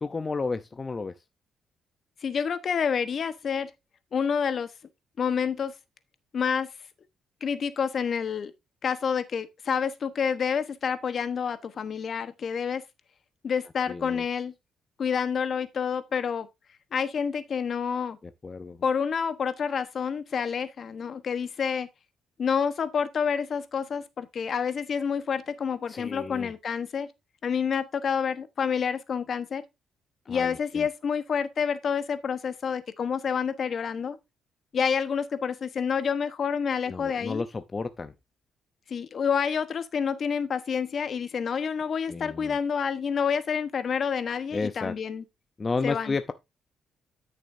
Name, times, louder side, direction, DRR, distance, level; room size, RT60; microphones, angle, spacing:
voice 1, 0.0-1.1 13.9-14.3 18.2-18.8 25.9-26.5 30.3-30.9 36.9-38.1 42.1-42.6 44.5-44.9 45.6-46.3, left 4 dB, 30° left, 0.7 m, -32 dB
voice 2, 2.2-3.7 4.1-4.7 5.2-5.7 6.3-6.7 7.4-8.5 8.8-12.8 13.4-14.5 15.0-16.5 16.9-18.2 18.8-21.9 22.4-27.1 27.4-29.6 30.3-34.2 34.7-37.4 38.9-45.2 45.8-46.2, left 6 dB, 50° left, 1.1 m, -28 dB
12.5 x 6.6 x 2.7 m
cardioid pair, 90°, 0 cm